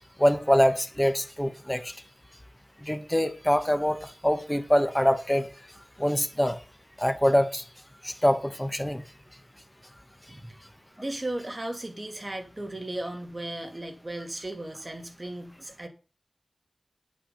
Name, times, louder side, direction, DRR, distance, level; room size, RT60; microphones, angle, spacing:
voice 1, 0.2-1.9 2.8-5.5 6.0-6.6 7.0-7.6 8.0-9.0, equal, 10° left, 1.5 m, -24 dB
voice 2, 11.0-15.9, right 1 dB, 35° right, 2.8 m, -36 dB
9.3 x 6.3 x 7.4 m
wide cardioid pair, 70°, 0 cm